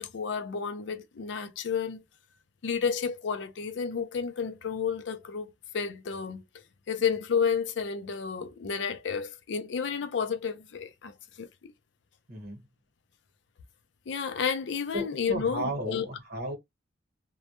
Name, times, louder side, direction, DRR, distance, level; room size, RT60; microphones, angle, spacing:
voice 1, 0.0-2.0 2.6-6.4 6.9-11.7 14.1-16.1, left 6 dB, 70° left, 0.4 m, -31 dB
voice 2, 12.3-12.6 14.9-16.6, right 1 dB, 50° right, 1.0 m, -34 dB
2.1 x 2.1 x 2.8 m
head